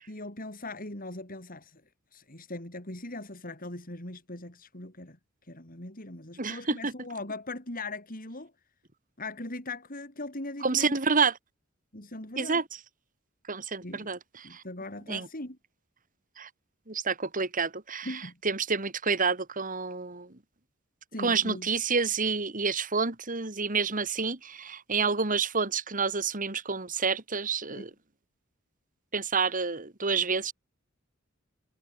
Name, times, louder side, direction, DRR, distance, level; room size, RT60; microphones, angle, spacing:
voice 1, 0.1-1.8 2.1-5.2 5.5-8.5 9.2-10.9 11.9-12.6 13.8-14.1 14.4-15.6 18.0-18.4 21.1-21.7 27.7-27.9, left 2 dB, 45° left, 6.4 m, -40 dB
voice 2, 6.4-6.9 10.6-11.4 12.4-12.6 13.5-14.6 15.1-15.3 16.4-16.5 16.9-20.3 21.2-27.9 29.1-30.5, right 5 dB, 40° right, 2.7 m, -29 dB
head